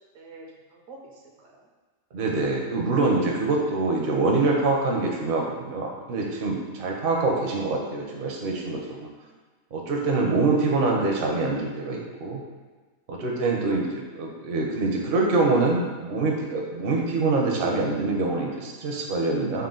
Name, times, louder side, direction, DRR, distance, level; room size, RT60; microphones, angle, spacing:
voice 1, 0.1-1.6 7.0-7.3 13.6-13.9, right 3 dB, 80° right, -1 dB, 1.1 m, -47 dB
voice 2, 2.1-9.1 9.7-12.4 13.1-19.7, right 3 dB, 55° right, -1 dB, 0.7 m, -25 dB
4.3 x 2.1 x 3.7 m, 1.4 s
omnidirectional pair, 1.4 m